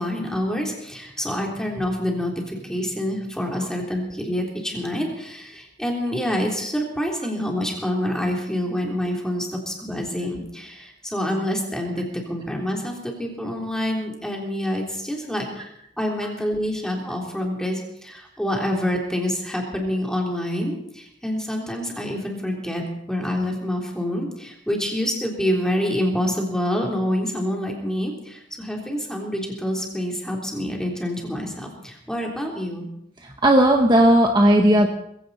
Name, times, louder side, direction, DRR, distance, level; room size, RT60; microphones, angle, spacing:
voice 1, 0.0-32.9, left 1 dB, 5° left, 0 dB, 3.6 m, -27 dB
voice 2, 33.2-34.9, right 1 dB, 25° right, 2 dB, 1.3 m, -16 dB
21.0 x 16.0 x 4.2 m, 0.77 s
head